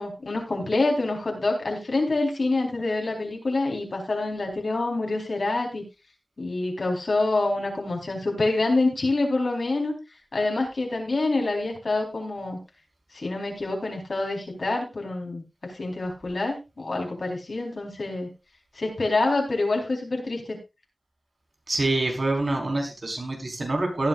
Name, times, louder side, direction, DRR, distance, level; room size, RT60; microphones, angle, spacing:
voice 1, 0.0-5.8 6.4-10.0 10.3-12.6 13.1-18.3 18.8-20.6, left 2 dB, 70° left, 1 dB, 4.1 m, -26 dB
voice 2, 21.7-24.1, right 2 dB, 55° right, 2 dB, 4.4 m, -26 dB
17.5 x 10.0 x 2.5 m, 0.25 s
wide cardioid pair, 60°, 0 cm